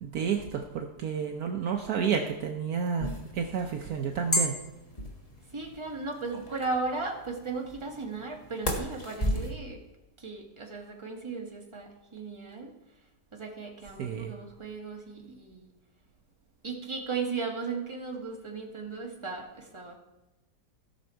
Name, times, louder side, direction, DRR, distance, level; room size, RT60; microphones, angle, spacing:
voice 1, 0.0-4.6 14.0-14.3, right 6 dB, 65° right, 3 dB, 1.2 m, -30 dB
sound 1, 3.0-9.5, left 1 dB, 20° left, 1.4 m, -34 dB
voice 2, 5.5-9.8 10.2-12.7 13.3-15.7 16.6-19.9, right 4 dB, 15° right, 0 dB, 1.8 m, -36 dB
16.5 x 6.4 x 4.5 m, 1.0 s
omnidirectional pair, 1.8 m